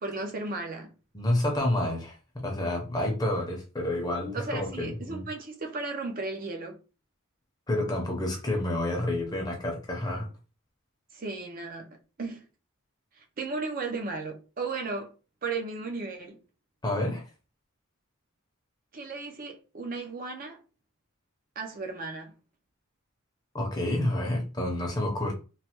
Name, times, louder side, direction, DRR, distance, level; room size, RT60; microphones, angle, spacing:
voice 1, 0.0-0.9 4.3-6.8 11.1-12.4 13.2-15.1 15.4-16.4 18.9-20.6 21.6-22.3, right 3 dB, 40° right, 0.5 m, -35 dB
voice 2, 1.1-5.2 7.7-10.3 16.8-17.2 23.5-25.3, left 1 dB, 20° left, 0.7 m, -29 dB
3.2 x 2.1 x 2.9 m
head